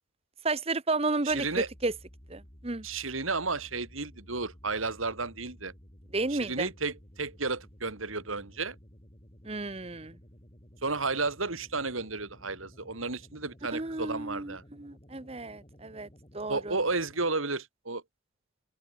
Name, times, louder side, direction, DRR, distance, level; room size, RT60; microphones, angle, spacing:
voice 1, 0.4-1.9 2.3-2.8 6.1-6.7 9.4-10.2 13.7-16.1 16.3-16.8, right 3 dB, 30° right, 1.0 m, -32 dB
voice 2, 1.2-1.7 2.8-5.7 6.3-8.8 10.8-14.6 16.5-18.0, right 3 dB, 90° right, 3.8 m, -32 dB
sound 1, 1.3-17.3, equal, 30° left, 7.1 m, -54 dB
open air
head